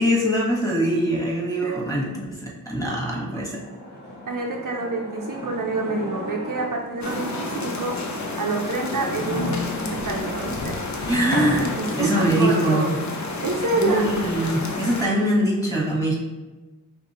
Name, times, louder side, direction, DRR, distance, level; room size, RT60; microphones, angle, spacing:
voice 1, 0.0-3.6 11.1-13.0 13.8-16.2, equal, 10° left, -3 dB, 1.3 m, -23 dB
sound 1, 3.6-8.0 8.6-12.4, left 1 dB, 30° left, 1.2 m, -33 dB
voice 2, 4.3-8.0 8.4-10.8 11.8-12.9 13.4-14.5, right 3 dB, 60° right, 0 dB, 0.7 m, -27 dB
sound 2, 7.0-15.0, left 3 dB, 50° left, 0.7 m, -31 dB
5.1 x 2.7 x 3.0 m, 1.2 s
cardioid pair, 50°, 36 cm